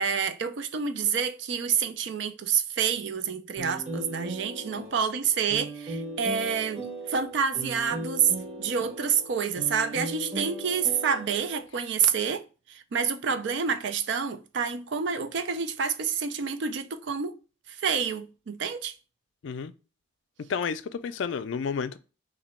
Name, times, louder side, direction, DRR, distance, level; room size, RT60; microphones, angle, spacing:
voice 1, 0.0-8.3 8.6-17.4 17.7-18.9, right 6 dB, 65° right, 0.4 m, -28 dB
sound 1, 3.6-11.7, right 1 dB, 35° right, 0.9 m, -38 dB
voice 2, 20.5-22.0, left 6 dB, 65° left, 0.4 m, -31 dB
2.9 x 2.6 x 4.2 m
head